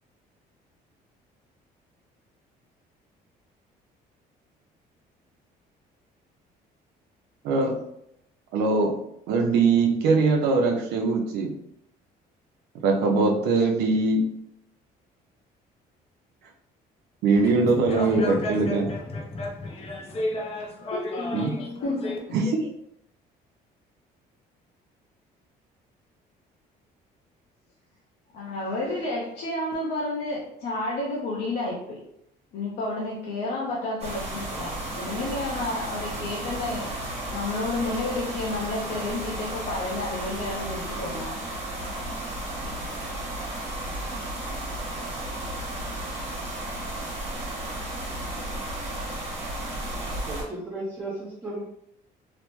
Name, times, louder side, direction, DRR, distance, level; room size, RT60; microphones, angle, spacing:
voice 1, 7.4-7.8 8.5-9.0 9.3-11.5 12.8-14.2 17.2-18.9 21.3-21.5 22.3-22.7, right 3 dB, 85° right, 2 dB, 0.5 m, -22 dB
sound 1, 17.3-22.2, left 1 dB, 35° left, 0.5 m, -33 dB
voice 2, 20.9-21.3 21.8-22.3 28.3-32.0 32.5-36.9 37.3-41.5, left 2 dB, 75° left, -5 dB, 0.7 m, -31 dB
sound 2, 34.0-50.4, right 1 dB, 35° right, 1.3 m, -33 dB
voice 3, 50.2-51.6, right 2 dB, 15° right, -6 dB, 0.7 m, -34 dB
3.0 x 2.0 x 3.0 m, 0.77 s
cardioid pair, 110°, 17 cm